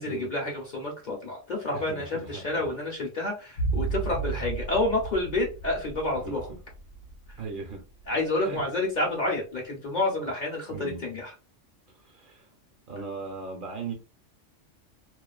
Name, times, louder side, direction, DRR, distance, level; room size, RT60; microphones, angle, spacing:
voice 1, 0.0-6.5 8.1-11.3, left 2 dB, 45° left, 0.7 m, -29 dB
voice 2, 1.7-2.7 6.2-6.4 7.4-7.8 8.4-8.6 10.7-11.0 11.9-12.5 12.9-13.9, right 4 dB, 50° right, 0.7 m, -38 dB
sound 1, 3.6-8.1, right 4 dB, 70° left, 0.9 m, -33 dB
2.4 x 2.3 x 2.3 m
omnidirectional pair, 1.3 m